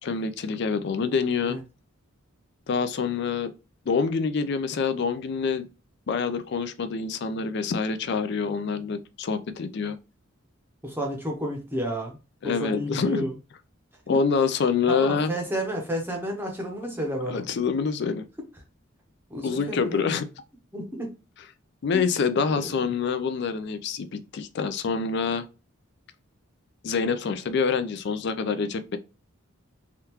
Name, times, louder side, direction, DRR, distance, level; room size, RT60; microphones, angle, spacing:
voice 1, 0.0-1.6 2.7-3.5 3.9-5.7 6.1-10.0 12.4-13.2 14.1-15.3 17.3-18.3 19.4-20.3 21.8-25.5 26.8-29.0, left 5 dB, 55° left, 0.4 m, -26 dB
voice 2, 10.8-12.2 12.4-13.3 14.1-14.2 14.9-17.4 19.3-20.0 20.7-21.1 21.9-22.0 22.5-22.7, equal, 10° right, 0.7 m, -31 dB
3.5 x 2.3 x 2.8 m
head